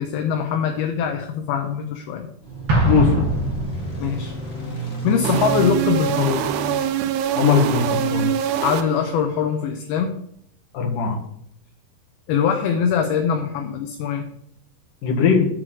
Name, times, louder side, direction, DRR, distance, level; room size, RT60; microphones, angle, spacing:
voice 1, 0.0-2.3 4.0-4.3 5.0-6.5 8.6-10.1 12.3-14.2, left 7 dB, 80° left, 4 dB, 2.4 m, -22 dB
sound 1, 2.4-7.9, right 3 dB, 40° left, 0.9 m, -31 dB
Explosion, 2.7-4.3, right 1 dB, 50° right, 1.8 m, -22 dB
voice 2, 2.9-3.2 7.4-8.3 10.7-11.2 15.0-15.5, left 6 dB, 60° left, 0 dB, 2.7 m, -19 dB
sound 2, 5.2-9.3, right 10 dB, 80° right, 2.6 m, -24 dB
7.7 x 4.8 x 6.2 m, 0.70 s
omnidirectional pair, 4.9 m